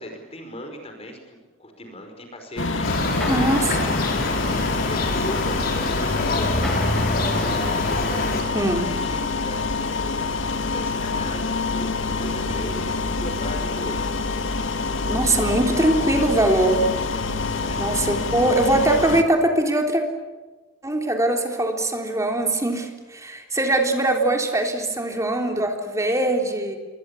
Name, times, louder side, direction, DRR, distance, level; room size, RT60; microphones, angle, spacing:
voice 1, 0.0-4.2 4.8-7.6 8.7-14.1 17.6-17.8, equal, 30° left, 4 dB, 5.3 m, -37 dB
sound 1, 2.6-19.2, left 3 dB, 80° left, 2.1 m, -26 dB
sound 2, 2.8-8.4, left 2 dB, 50° left, 5.0 m, -26 dB
sound 3, 3.2-10.1, left 1 dB, ahead, 4.8 m, -40 dB
voice 2, 3.2-4.0 8.5-8.9 15.1-16.8 17.8-20.0 20.8-26.8, right 1 dB, 15° right, 3 dB, 3.6 m, -22 dB
28.0 x 24.0 x 8.5 m, 1.2 s
head